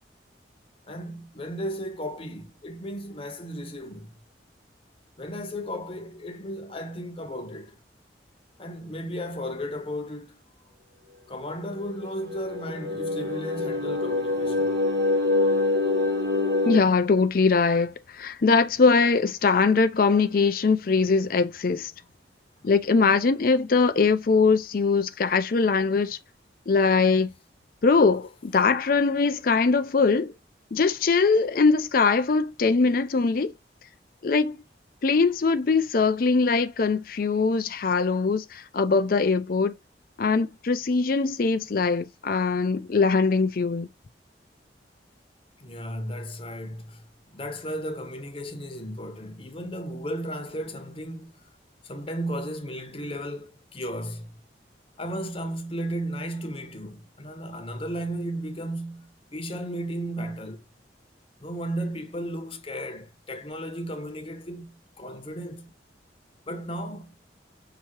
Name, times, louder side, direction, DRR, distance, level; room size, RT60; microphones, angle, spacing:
voice 1, 0.9-4.1 5.2-7.8 8.6-10.4 11.3-14.8 28.5-28.6 45.6-47.0 47.3-51.4 51.8-54.3 55.0-60.6 61.4-65.7 66.5-67.1, equal, 30° left, 0.9 m, -34 dB
sound 1, 11.8-16.8, left 2 dB, 60° right, 1.7 m, -25 dB
voice 2, 16.7-21.9 22.6-26.2 26.7-27.3 27.8-30.3 30.7-33.5 34.2-34.6 35.0-39.7 40.2-43.9, left 4 dB, 50° left, 0.5 m, -22 dB
5.8 x 2.8 x 3.0 m
head